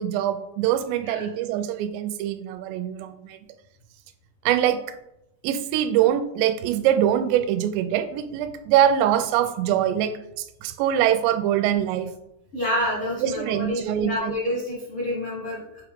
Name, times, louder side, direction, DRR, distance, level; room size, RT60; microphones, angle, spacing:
voice 1, 0.0-3.4 4.5-5.0 5.4-12.1 13.2-14.3, right 10 dB, 90° right, 10 dB, 2.8 m, -23 dB
voice 2, 12.5-15.8, left 1 dB, 75° left, -6 dB, 1.2 m, -28 dB
7.2 x 4.8 x 3.6 m, 0.86 s
omnidirectional pair, 4.9 m